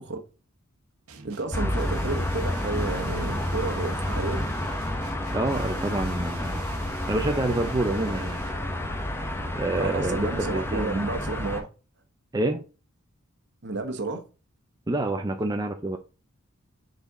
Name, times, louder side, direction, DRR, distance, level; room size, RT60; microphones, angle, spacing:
sound 1, 1.1-8.7, right 5 dB, 70° right, 1.1 m, -47 dB
voice 1, 1.2-4.5 9.8-11.7 13.6-14.2, right 3 dB, 50° right, 1.2 m, -31 dB
sound 2, 1.5-11.6, left 1 dB, 10° left, 1.0 m, -30 dB
voice 2, 5.3-6.6 7.1-8.4 9.5-11.1 12.3-12.6 14.9-16.0, right 2 dB, 15° right, 0.5 m, -27 dB
6.8 x 4.1 x 3.6 m
head